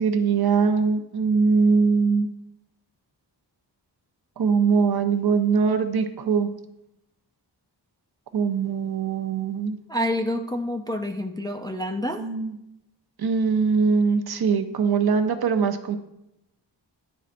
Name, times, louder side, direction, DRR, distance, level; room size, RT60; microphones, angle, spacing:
voice 1, 0.0-2.3 4.4-6.5 8.3-9.8 12.2-12.5 13.2-16.0, right 5 dB, 55° right, 7 dB, 0.6 m, -22 dB
voice 2, 9.9-12.3, left 1 dB, 10° left, 2 dB, 0.3 m, -28 dB
10.0 x 4.0 x 2.5 m, 0.88 s
wide cardioid pair, 90°, 45 cm